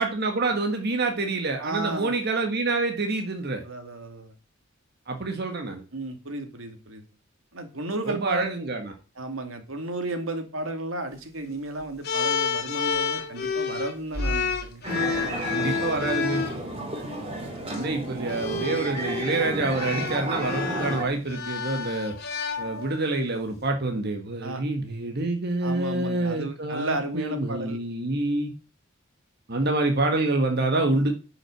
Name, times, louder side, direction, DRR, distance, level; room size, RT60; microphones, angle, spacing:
voice 1, 0.0-3.6 5.1-5.8 8.1-8.9 15.5-16.4 17.7-22.1 22.6-28.5 29.5-31.1, right 2 dB, 55° right, 4 dB, 1.6 m, -27 dB
voice 2, 1.6-2.1 3.6-4.3 5.9-7.0 7.5-8.5 9.2-14.8 24.4-24.6 25.6-27.8, right 2 dB, 80° right, 7 dB, 2.5 m, -33 dB
sound 1, 12.0-16.6 17.6-17.8 18.3-23.1, left 5 dB, 55° left, 2.4 m, -29 dB
sound 2, 14.8-21.0, right 1 dB, 30° right, 3.8 m, -33 dB
10.5 x 6.4 x 7.8 m, 0.35 s
head